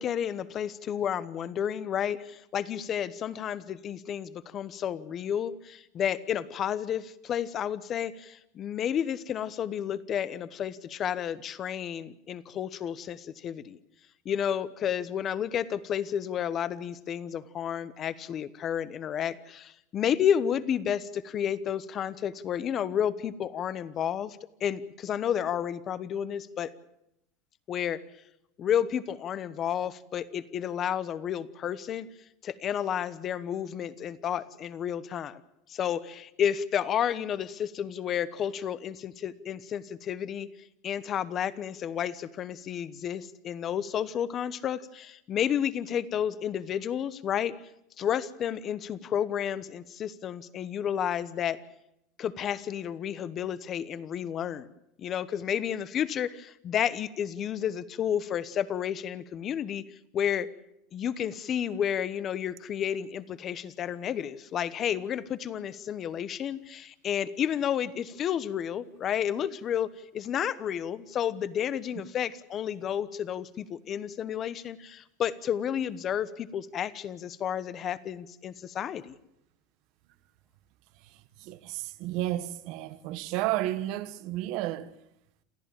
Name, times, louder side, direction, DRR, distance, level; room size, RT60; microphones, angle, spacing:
voice 1, 0.0-13.8 14.2-26.7 27.7-28.0 28.6-32.1 32.4-35.4 35.7-40.5 40.8-47.5 48.0-51.6 52.2-54.7 55.0-60.5 60.9-79.1, left 9 dB, 25° left, 1.0 m, -31 dB
voice 2, 81.0-84.9, right 15 dB, 50° right, 1.3 m, -32 dB
28.5 x 14.0 x 8.9 m
supercardioid pair, 165°, 0 cm